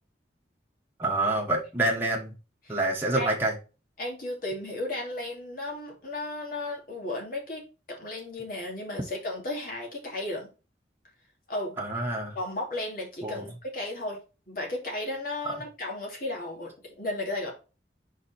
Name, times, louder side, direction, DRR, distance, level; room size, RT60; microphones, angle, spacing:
voice 1, 1.0-2.3 2.7-3.6 11.8-12.4 13.2-13.4, right 2 dB, 10° right, -3 dB, 1.3 m, -27 dB
voice 2, 4.0-10.5 11.5-11.7 12.3-14.2 14.5-17.5, left 2 dB, 55° left, 0 dB, 2.7 m, -34 dB
5.0 x 4.7 x 4.4 m, 0.32 s
head